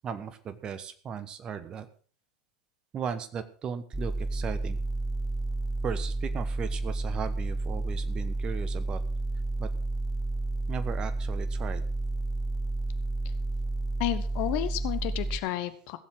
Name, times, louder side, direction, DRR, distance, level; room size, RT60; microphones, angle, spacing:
voice 1, 0.0-1.9 2.9-4.8 5.8-9.0 9.6-9.7 10.7-11.8, right 7 dB, 35° right, 11 dB, 1.2 m, -36 dB
sound 1, 3.9-15.4, right 2 dB, 15° right, 1.6 m, -31 dB
voice 2, 14.0-16.0, left 16 dB, 55° left, 12 dB, 1.0 m, -31 dB
16.5 x 7.3 x 6.2 m, 0.43 s
figure-of-eight pair, 80°, 3 cm